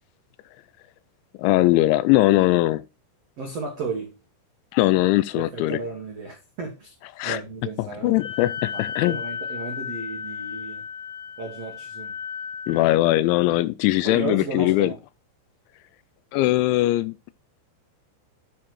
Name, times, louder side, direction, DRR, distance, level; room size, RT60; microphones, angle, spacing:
voice 1, 1.4-2.8 4.7-5.8 7.2-7.4 7.8-9.2 12.7-14.9 16.3-17.1, left 16 dB, 85° left, 2.9 m, -20 dB
voice 2, 3.4-4.2 5.4-6.9 7.2-10.8 11.4-12.1 14.0-15.0, right 3 dB, 90° right, 1.4 m, -34 dB
Wind instrument woodwind instrument, 8.2-12.9, left 6 dB, 60° left, 3.8 m, -34 dB
10.0 x 4.7 x 4.3 m
omnidirectional pair, 5.4 m